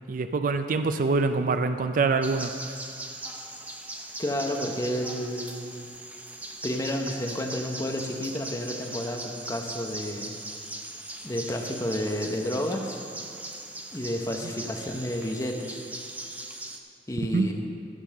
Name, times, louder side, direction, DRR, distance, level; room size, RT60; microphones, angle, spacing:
voice 1, 0.1-2.5 17.3-17.5, right 4 dB, 50° right, 9 dB, 0.4 m, -25 dB
sound 1, 2.2-16.8, right 1 dB, 10° right, 0.7 m, -39 dB
voice 2, 4.2-5.7 6.6-10.4 11.2-13.0 13.9-15.8 17.1-17.6, equal, 20° left, 3 dB, 0.9 m, -31 dB
15.0 x 5.5 x 6.4 m, 2.5 s
head